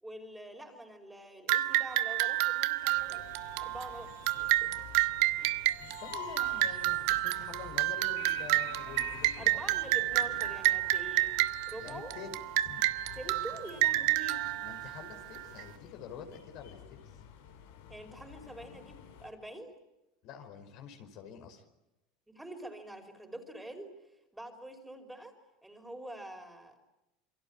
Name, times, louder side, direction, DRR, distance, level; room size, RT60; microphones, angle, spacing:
voice 1, 0.0-3.3 3.6-4.7 9.4-11.4 11.7-12.2 13.2-14.4 17.9-19.8 22.3-23.9 24.3-25.3 25.6-26.8, right 1 dB, 5° right, 5 dB, 5.0 m, -46 dB
sound 1, 1.5-15.6, right 17 dB, 70° right, 1.0 m, -30 dB
sound 2, 2.9-19.3, left 8 dB, 85° left, 5.0 m, -50 dB
voice 2, 5.8-9.6 11.8-12.8 14.6-16.8 20.2-21.6, left 7 dB, 60° left, 5 dB, 5.1 m, -47 dB
28.0 x 23.0 x 8.7 m, 0.93 s
supercardioid pair, 115°, 0 cm